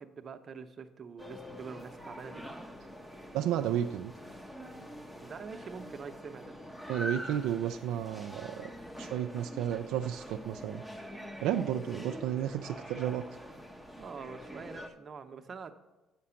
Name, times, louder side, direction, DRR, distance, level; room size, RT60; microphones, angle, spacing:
voice 1, 0.0-2.4 5.2-6.6 14.0-15.7, right 5 dB, 45° right, 7 dB, 0.7 m, -45 dB
sound 1, 1.2-14.9, equal, 10° left, 0.8 m, -45 dB
voice 2, 3.3-4.1 6.9-8.7 9.0-10.8 11.4-13.2, right 10 dB, 80° right, 6 dB, 0.3 m, -32 dB
7.4 x 5.9 x 5.7 m, 1.1 s
supercardioid pair, 80°, 0 cm